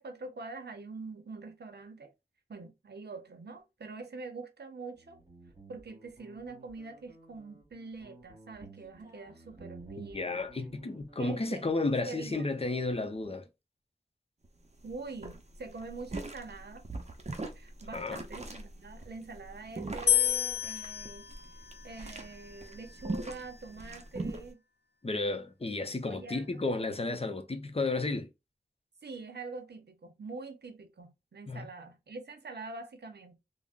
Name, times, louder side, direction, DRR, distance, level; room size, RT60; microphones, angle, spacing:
voice 1, 0.0-2.1 2.5-5.2 5.7-10.4 11.2-11.7 12.1-12.5 14.8-16.8 17.5-21.3 21.8-24.6 26.1-26.6 29.0-33.4, right 3 dB, 85° right, 0.6 m, -44 dB
Guitar, 5.0-13.4, right 3 dB, 20° right, 1.8 m, -54 dB
voice 2, 10.1-13.5 17.9-18.2 25.0-28.3 31.5-31.7, left 3 dB, 35° left, 0.6 m, -32 dB
sound 1, 14.4-14.5 14.8-15.0 15.2-24.5, right 2 dB, 40° right, 0.6 m, -40 dB
sound 2, 20.1-23.3, left 11 dB, 80° left, 0.4 m, -32 dB
3.5 x 2.0 x 2.4 m
wide cardioid pair, 50°, 17 cm